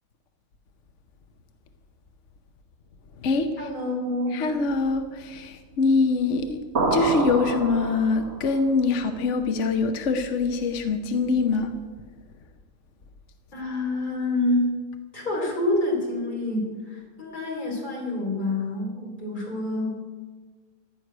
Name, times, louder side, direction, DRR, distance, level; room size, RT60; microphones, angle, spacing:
voice 1, 3.6-4.4 13.5-14.7 15.1-19.9, left 2 dB, 30° left, -2 dB, 3.8 m, -27 dB
voice 2, 4.3-6.6 6.9-11.7, left 4 dB, 55° left, 7 dB, 1.1 m, -24 dB
sound 1, 6.8-8.5, right 3 dB, 45° right, 1.6 m, -26 dB
15.0 x 6.4 x 9.8 m, 1.4 s
omnidirectional pair, 1.6 m